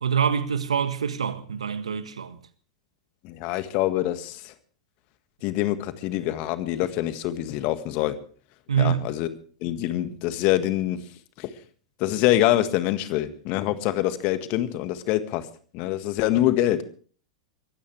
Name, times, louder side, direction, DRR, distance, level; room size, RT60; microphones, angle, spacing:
voice 1, 0.0-2.4 8.7-9.1, right 7 dB, 75° right, 1.5 m, -25 dB
voice 2, 3.2-4.5 5.4-8.2 8.8-9.3 9.6-11.0 11.4-11.5 12.0-15.4 15.7-16.8, left 14 dB, 45° left, 1.7 m, -25 dB
22.0 x 16.0 x 3.4 m
figure-of-eight pair, 95°, 3 cm